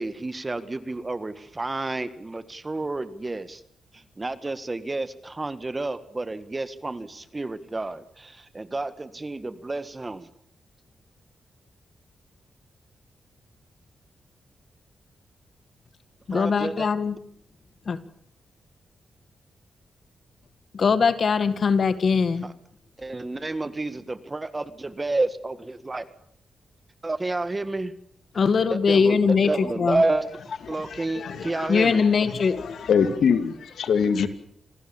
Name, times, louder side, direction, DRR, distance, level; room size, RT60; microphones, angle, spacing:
voice 1, 0.0-3.6 3.9-10.3 16.3-16.9 22.4-22.5 23.0-26.1 27.0-27.9 28.7-30.2 30.7-32.0, right 2 dB, 25° right, 1.8 m, -30 dB
voice 2, 16.3-17.2 17.9-18.0 20.7-22.5 28.3-30.0 31.7-32.6, left 5 dB, 55° left, 2.0 m, -21 dB
voice 3, 30.7-34.3, left 6 dB, 75° left, 2.5 m, -25 dB
28.0 x 19.5 x 7.3 m
cardioid pair, 95°, 0 cm